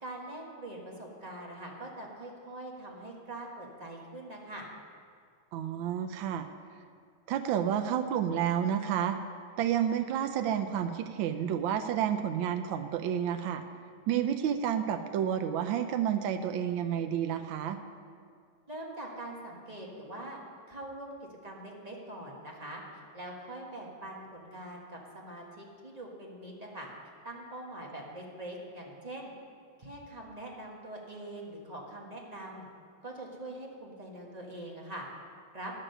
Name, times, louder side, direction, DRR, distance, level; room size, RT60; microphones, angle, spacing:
voice 1, 0.0-4.7 18.7-20.4 20.7-22.8 23.1-26.9 27.2-29.3 29.8-32.6 33.0-35.0 35.5-35.7, right 1 dB, 20° right, -2 dB, 1.3 m, -43 dB
voice 2, 5.5-6.5 7.3-9.2 9.6-13.6 14.1-17.8, right 9 dB, 80° right, 7 dB, 1.4 m, -30 dB
11.0 x 7.5 x 6.6 m, 2.1 s
omnidirectional pair, 2.2 m